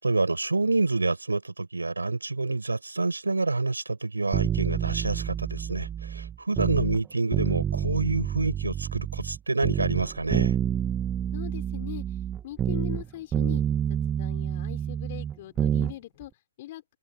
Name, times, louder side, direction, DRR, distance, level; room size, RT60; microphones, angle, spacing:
voice 1, 0.0-10.6, right 3 dB, 85° right, 6.5 m, -27 dB
sound 1, 4.3-7.0 7.3-9.4 9.6-13.1 13.3-15.9 16.2-16.3, right 9 dB, 15° right, 1.2 m, -28 dB
voice 2, 11.3-12.2 12.4-13.6 13.9-16.3 16.6-16.8, left 15 dB, 40° left, 4.2 m, -40 dB
figure-of-eight pair, 135°, 0 cm